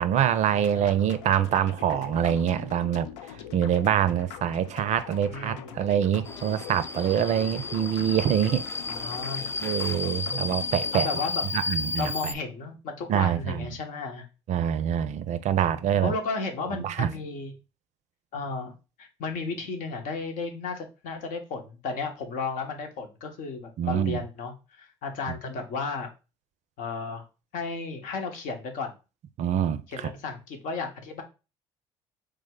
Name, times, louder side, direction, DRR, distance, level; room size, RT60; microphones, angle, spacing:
voice 1, 0.0-3.1 3.5-8.6 9.6-11.1 11.5-12.3 13.1-13.7 14.5-16.1 16.8-17.1 23.8-24.2 29.4-30.1, right 9 dB, 50° right, 0.4 m, -25 dB
voice 2, 0.5-1.0 5.3-5.8 8.9-9.5 10.9-11.4 12.0-14.2 16.0-17.5 18.3-18.7 19.0-26.1 26.8-27.2 27.5-28.9 29.9-31.2, left 4 dB, 65° left, 0.9 m, -34 dB
sound 1, 0.6-11.1, left 9 dB, 80° left, 0.4 m, -43 dB
Subway metro underground, 6.2-12.3, left 3 dB, 15° left, 0.4 m, -33 dB
3.2 x 2.1 x 3.7 m
hypercardioid pair, 60°, 15 cm